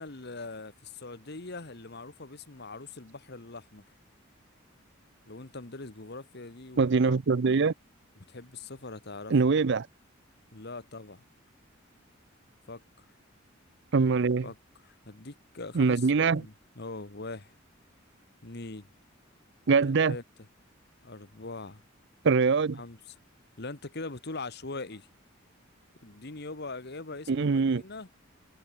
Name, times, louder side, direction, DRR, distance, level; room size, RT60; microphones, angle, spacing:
voice 1, 0.0-3.8 5.3-7.2 8.2-9.3 10.5-11.2 12.7-12.8 14.4-14.6 14.8-17.5 18.4-18.9 19.9-20.2 21.0-21.8 22.7-23.2 23.6-25.1 26.0-28.1, left 3 dB, 55° left, 1.6 m, -42 dB
voice 2, 6.8-7.7 9.3-9.9 13.9-14.5 15.7-16.4 19.7-20.2 22.2-22.8 27.3-27.8, right 4 dB, 60° right, 0.5 m, -23 dB
head